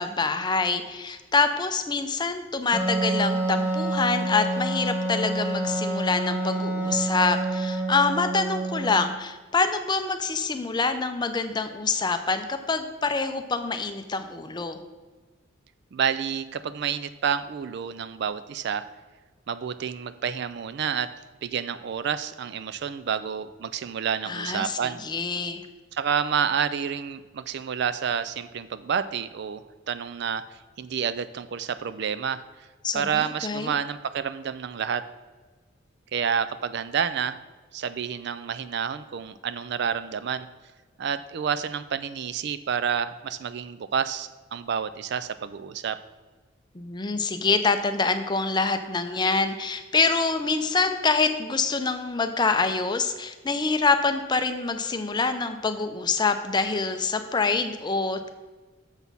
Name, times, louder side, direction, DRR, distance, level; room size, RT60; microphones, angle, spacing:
voice 1, 0.0-14.8 24.3-25.6 32.8-33.7 46.7-58.3, left 4 dB, 20° left, 8 dB, 0.5 m, -26 dB
Wind instrument woodwind instrument, 2.7-9.2, right 2 dB, 35° right, 1.3 m, -27 dB
voice 2, 15.9-18.8 19.5-21.1 21.4-25.0 25.9-30.4 30.8-32.4 32.9-35.0 36.1-37.4 37.7-40.5 41.0-46.0, right 7 dB, 55° right, 13 dB, 0.4 m, -29 dB
7.1 x 6.2 x 5.4 m, 1.3 s
head